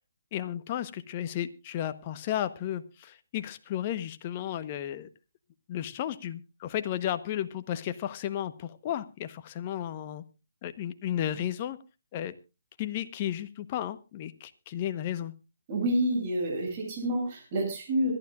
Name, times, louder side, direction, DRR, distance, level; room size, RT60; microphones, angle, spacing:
voice 1, 0.3-5.1 5.7-10.2 10.6-11.8 12.1-12.3 12.8-15.3, left 11 dB, 35° left, 12 dB, 1.1 m, -33 dB
voice 2, 15.7-18.1, right 1 dB, 35° right, 0 dB, 7.5 m, -28 dB
25.5 x 12.0 x 2.4 m, 0.28 s
figure-of-eight pair, 140°, 0 cm